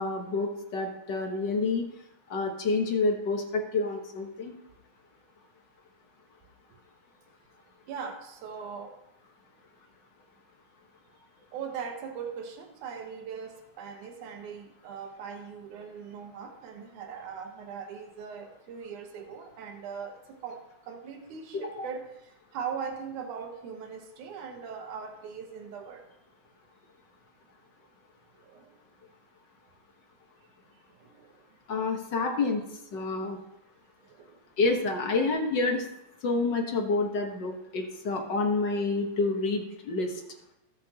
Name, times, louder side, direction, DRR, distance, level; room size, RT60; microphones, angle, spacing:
voice 1, 0.0-1.9 2.3-4.6 21.8-21.9 31.7-32.6 32.9-33.4 34.6-35.9 36.2-40.2, left 3 dB, 55° left, 2 dB, 1.3 m, -28 dB
voice 2, 7.9-9.0 11.5-26.1 28.4-28.8 30.9-31.4 34.0-34.4, right 6 dB, 85° right, 3 dB, 2.6 m, -40 dB
19.0 x 6.9 x 2.9 m, 0.85 s
omnidirectional pair, 3.4 m